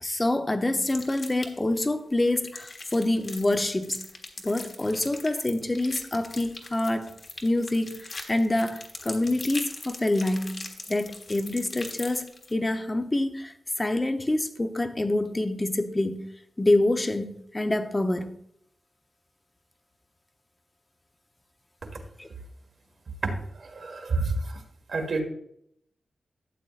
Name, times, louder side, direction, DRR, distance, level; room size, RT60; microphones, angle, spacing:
voice 1, 0.0-4.0 4.4-7.1 7.4-16.3 16.6-18.3 22.2-22.3, left 1 dB, 20° left, 0.7 m, -26 dB
sound 1, 0.9-1.7 2.2-12.5, left 3 dB, 45° left, 1.4 m, -41 dB
voice 2, 23.2-24.6 24.9-25.2, right 3 dB, 70° right, 1.6 m, -29 dB
12.5 x 8.3 x 2.5 m
wide cardioid pair, 120°, 0 cm